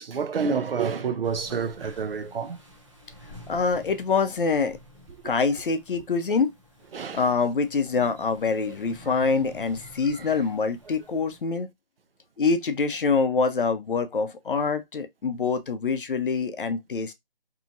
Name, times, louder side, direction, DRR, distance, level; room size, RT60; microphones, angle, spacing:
voice 1, 0.0-2.6 6.9-7.2, right 6 dB, 75° right, 0.6 m, -28 dB
sound 1, 1.2-11.4, left 1 dB, 30° right, 0.6 m, -49 dB
voice 2, 3.5-4.8 5.2-6.5 7.1-11.7 12.4-17.1, left 4 dB, 60° left, 0.5 m, -25 dB
2.8 x 2.3 x 2.6 m
figure-of-eight pair, 165°, 29 cm